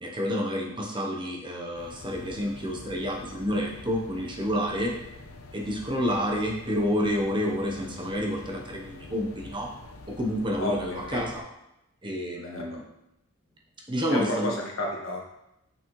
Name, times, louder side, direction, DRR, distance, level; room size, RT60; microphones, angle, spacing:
voice 1, 0.0-4.9 5.5-9.7 10.1-11.4 12.0-12.8 13.9-14.5, equal, 20° right, -1 dB, 0.8 m, -29 dB
sound 1, 1.7-11.4, left 2 dB, 85° left, 0.8 m, -46 dB
voice 2, 10.6-11.3 12.4-12.8 14.1-15.2, left 1 dB, 65° left, -1 dB, 1.4 m, -31 dB
7.0 x 6.1 x 3.1 m, 0.87 s
head